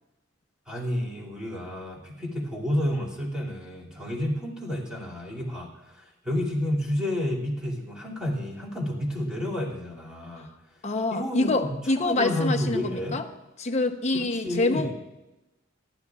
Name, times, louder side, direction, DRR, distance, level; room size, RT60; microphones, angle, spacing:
voice 1, 0.7-10.5 11.1-13.2 14.1-14.9, left 1 dB, 5° right, -4 dB, 2.6 m, -30 dB
voice 2, 10.8-13.3 13.6-14.9, left 2 dB, 35° left, 5 dB, 0.9 m, -26 dB
25.0 x 11.0 x 2.4 m, 1.0 s
head